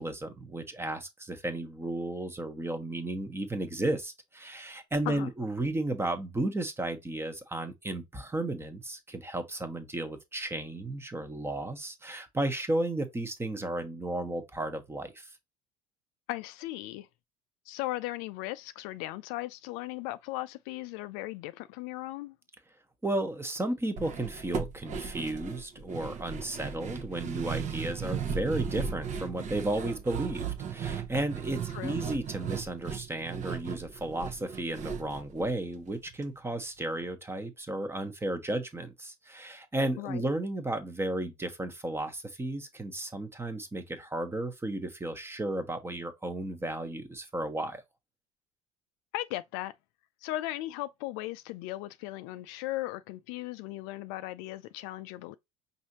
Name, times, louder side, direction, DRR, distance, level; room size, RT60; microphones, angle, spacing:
voice 1, 0.0-15.3 23.0-47.8, right 1 dB, 15° right, 1.1 m, -34 dB
voice 2, 16.3-17.1 17.7-22.4 31.7-32.0 40.0-40.3 49.1-49.7 50.2-55.4, left 17 dB, 60° left, 0.4 m, -37 dB
sound 1, 24.0-36.2 36.5-36.6 37.0-37.1, right 6 dB, 45° right, 0.9 m, -36 dB
5.4 x 2.7 x 2.9 m
hypercardioid pair, 65°, 18 cm